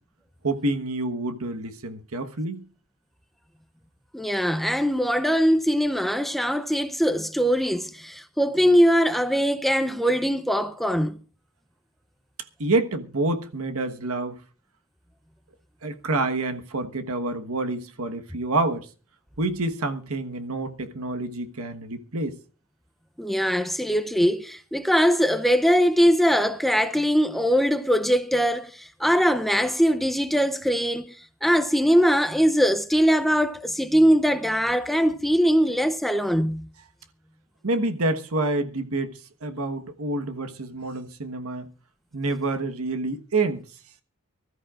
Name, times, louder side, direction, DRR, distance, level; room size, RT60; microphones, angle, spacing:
voice 1, 0.4-2.7 12.6-14.4 15.8-18.9 19.4-22.4 37.6-39.1 39.4-41.7 42.1-43.6, right 2 dB, 85° right, 1.3 m, -27 dB
voice 2, 4.1-11.2 23.2-36.7, equal, ahead, 0.6 m, -21 dB
24.5 x 13.5 x 2.5 m
head